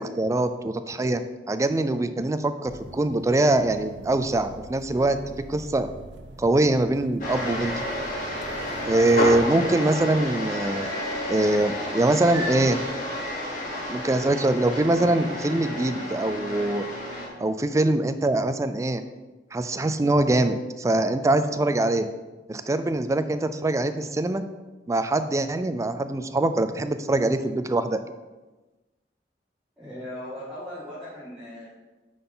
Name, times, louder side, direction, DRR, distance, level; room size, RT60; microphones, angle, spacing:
voice 1, 0.0-5.2 5.5-5.9 6.4-7.7 8.8-11.0 11.3-12.8 13.9-16.9 17.4-19.0 19.5-22.1 22.5-24.4 24.9-28.0, right 2 dB, 20° right, 10 dB, 0.3 m, -23 dB
sound 1, 2.6-9.5, right 1 dB, 90° right, 0.6 m, -43 dB
sound 2, 7.2-17.3, left 1 dB, 50° left, 1.7 m, -31 dB
voice 2, 29.8-31.7, left 1 dB, ahead, -11 dB, 1.7 m, -38 dB
9.5 x 3.9 x 3.7 m, 1.2 s
head